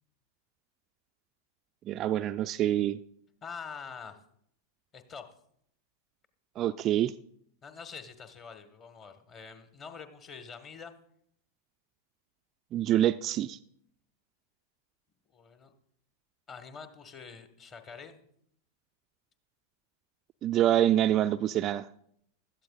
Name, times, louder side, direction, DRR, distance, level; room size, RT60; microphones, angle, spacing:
voice 1, 1.9-3.0 6.6-7.1 12.7-13.6 20.4-21.9, right 12 dB, 30° right, 11 dB, 0.3 m, -26 dB
voice 2, 3.4-4.2 4.9-5.3 7.6-10.9 15.3-15.7 16.5-18.3, left 6 dB, 30° left, 8 dB, 1.3 m, -45 dB
16.0 x 12.5 x 2.4 m, 0.70 s
figure-of-eight pair, 90°, 0 cm